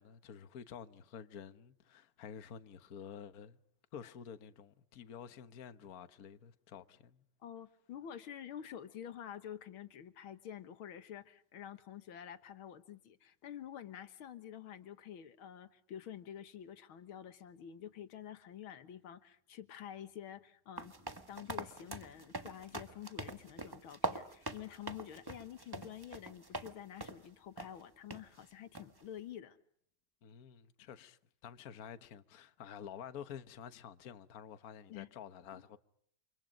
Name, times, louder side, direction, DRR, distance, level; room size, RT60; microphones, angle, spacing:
voice 1, 0.0-3.6 3.9-7.2 30.2-35.8, left 8 dB, 50° left, 1.5 m, -50 dB
voice 2, 7.4-20.9 21.3-29.6 34.9-35.1 35.5-35.6, left 10 dB, 85° left, 2.1 m, -48 dB
sound 1, 20.8-26.7 27.0-27.3 27.6-27.7 28.1-28.2 28.7-29.0, right 2 dB, 15° right, 1.2 m, -43 dB
29.5 x 26.5 x 5.2 m
omnidirectional pair, 2.2 m